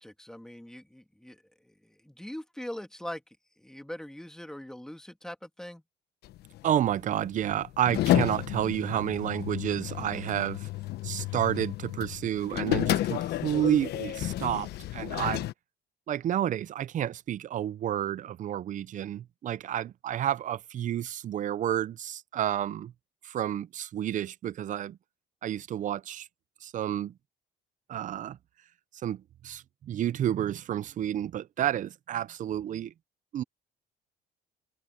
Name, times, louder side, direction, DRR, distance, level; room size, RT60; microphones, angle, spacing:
voice 1, 0.0-5.8 8.3-8.6, left 1 dB, 5° left, 2.3 m, -42 dB
sound 1, 6.2-15.5, left 14 dB, 75° left, 1.1 m, -31 dB
voice 2, 6.6-10.7 11.0-15.5 16.1-22.9 23.2-25.0 25.4-26.3 26.6-27.1 27.9-28.4 29.0-32.9 33.3-33.4, right 11 dB, 50° right, 0.7 m, -30 dB
cardioid pair, 110°, 17 cm